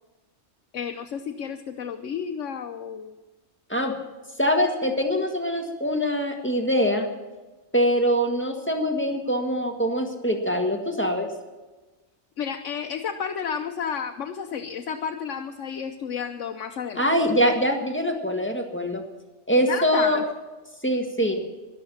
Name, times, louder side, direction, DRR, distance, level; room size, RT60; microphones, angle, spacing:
voice 1, 0.7-3.2 12.4-17.1 19.7-20.2, left 7 dB, 85° left, 4 dB, 1.2 m, -31 dB
voice 2, 4.4-7.1 7.7-11.3 17.0-19.0 19.5-20.2 20.8-21.4, equal, 10° left, 2 dB, 1.8 m, -23 dB
13.0 x 11.5 x 7.2 m, 1.2 s
omnidirectional pair, 1.2 m